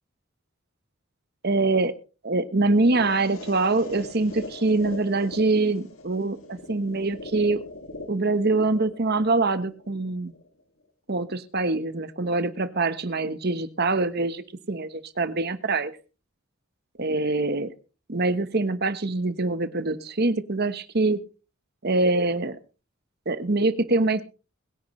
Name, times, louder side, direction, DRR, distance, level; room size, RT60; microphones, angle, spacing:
voice 1, 1.4-1.9 2.2-7.6 8.1-10.3 11.1-15.9 17.0-17.7 18.1-21.2 21.8-22.6 23.3-24.2, right 3 dB, 50° right, 12 dB, 1.2 m, -24 dB
sound 1, 2.6-10.6, left 2 dB, 85° left, 2.3 m, -41 dB
22.0 x 10.5 x 3.2 m, 0.34 s
head